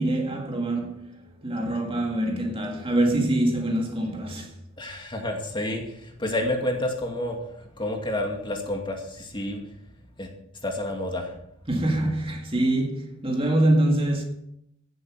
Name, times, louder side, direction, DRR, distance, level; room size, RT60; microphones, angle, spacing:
voice 1, 0.0-4.5 11.7-14.2, right 1 dB, 25° right, 2.1 m, -25 dB
voice 2, 4.8-9.7 10.2-10.3 10.6-11.3, left 1 dB, 25° left, 2.2 m, -30 dB
16.5 x 7.8 x 6.2 m
head